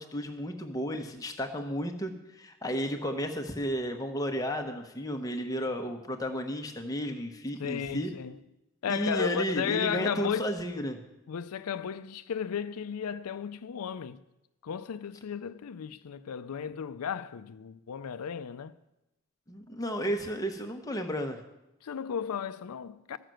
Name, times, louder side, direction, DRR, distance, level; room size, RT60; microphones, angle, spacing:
voice 1, 0.0-8.1 8.9-11.0 19.5-21.4, equal, 15° left, 1.0 m, -33 dB
voice 2, 7.6-8.4 8.8-10.5 11.3-14.2 14.6-18.7 21.8-23.2, left 7 dB, 90° left, 0.4 m, -34 dB
14.0 x 6.7 x 7.7 m
head